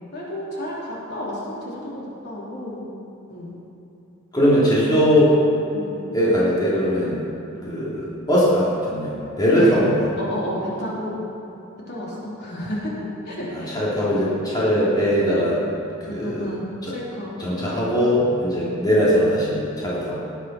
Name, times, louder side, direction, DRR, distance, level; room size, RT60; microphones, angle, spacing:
voice 1, 0.1-1.8 2.2-2.8 3.3-3.5 5.7-6.1 7.5-7.8 9.6-9.7 10.2-11.2 11.9-12.9 13.3-13.8 16.1-17.3, left 1 dB, 50° left, -6 dB, 3.4 m, -31 dB
voice 2, 4.3-5.4 6.1-7.2 7.7-10.1 13.5-15.6 16.1-16.5 16.8-16.9 17.4-20.2, equal, 20° left, -8 dB, 2.8 m, -20 dB
18.5 x 8.0 x 6.1 m, 2.8 s
head